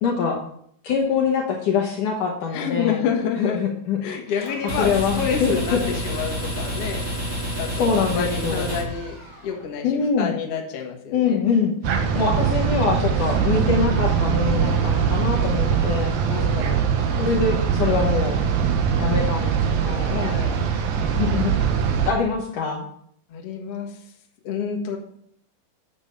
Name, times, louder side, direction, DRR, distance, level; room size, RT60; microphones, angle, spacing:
voice 1, 0.0-0.4 0.8-3.0 3.4-4.0 4.8-5.8 7.7-8.7 9.8-10.3 11.1-16.2 17.2-18.4 19.0-20.2 21.2-21.5 22.1-22.9, left 5 dB, 65° left, -1 dB, 2.3 m, -24 dB
voice 2, 2.5-3.6 4.0-9.2 9.4-9.9 10.2-11.4 11.8-12.3 16.2-16.8 20.0-20.6 23.3-24.1 24.4-25.0, left 7 dB, 50° left, 1 dB, 2.0 m, -29 dB
sound 1, 4.4-9.6, right 1 dB, 10° right, 2.5 m, -29 dB
sound 2, 11.8-22.1, right 7 dB, 70° right, 2.8 m, -22 dB
9.1 x 7.8 x 5.6 m, 0.69 s
omnidirectional pair, 4.6 m